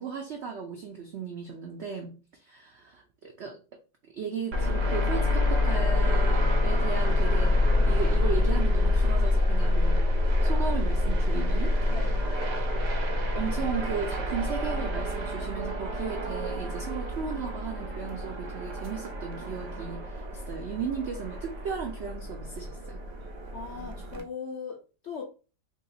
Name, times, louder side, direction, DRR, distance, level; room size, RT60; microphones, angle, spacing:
voice 1, 0.0-3.6 4.1-10.0 10.4-11.7 13.3-23.0, right 6 dB, 80° right, 2 dB, 0.6 m, -36 dB
sound 1, 4.5-24.2, left 2 dB, 55° right, 0.9 m, -27 dB
voice 2, 11.3-12.3 23.5-25.2, left 6 dB, 70° left, 1 dB, 0.6 m, -40 dB
2.9 x 2.8 x 4.0 m, 0.34 s
omnidirectional pair, 1.9 m